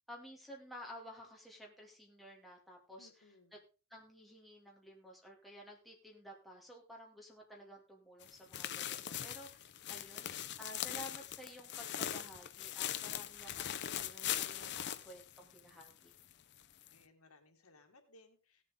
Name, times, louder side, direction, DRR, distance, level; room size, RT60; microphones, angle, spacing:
voice 1, 0.1-3.1 3.5-3.6 3.9-10.3 10.6-16.1, equal, ahead, -2 dB, 2.6 m, -53 dB
voice 2, 3.0-3.6 16.9-18.6, left 2 dB, 80° left, 4 dB, 2.1 m, -63 dB
sound 1, 8.2-15.9 16.2-16.3 16.8-16.9, left 11 dB, 55° left, 0.6 m, -41 dB
16.5 x 7.4 x 3.7 m, 0.33 s
head